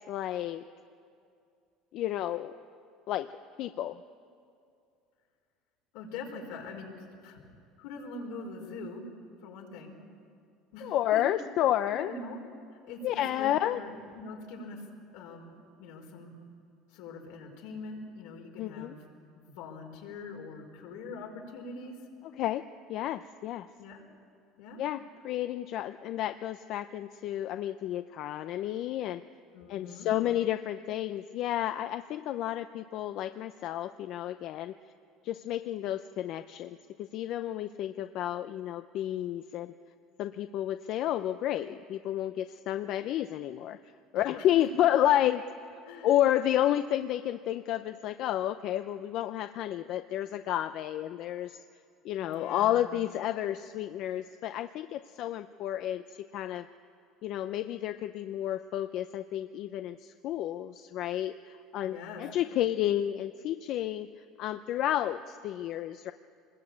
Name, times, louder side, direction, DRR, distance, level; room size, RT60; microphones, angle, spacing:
voice 1, 0.1-0.6 1.9-2.5 3.1-3.3 3.6-4.0 10.8-12.1 13.0-13.8 18.6-18.9 22.4-22.6 22.9-23.7 24.8-29.2 29.7-34.7 35.2-39.7 40.2-43.8 44.1-45.4 46.0-51.6 52.0-56.0 56.3-56.7 57.2-64.1 64.4-66.1, left 12 dB, 50° left, 10 dB, 0.5 m, -31 dB
voice 2, 5.9-7.5 7.8-9.0 9.4-10.0 10.7-11.2 11.9-12.4 12.9-14.9 15.1-16.4 16.9-19.1 19.3-22.0 23.8-24.1 24.6-24.8 29.5-30.1 44.1-44.7 45.8-46.1 52.2-52.8 61.8-62.3, left 3 dB, 80° left, 1 dB, 4.7 m, -43 dB
25.5 x 20.5 x 8.6 m, 2.4 s
cardioid pair, 150°, 0 cm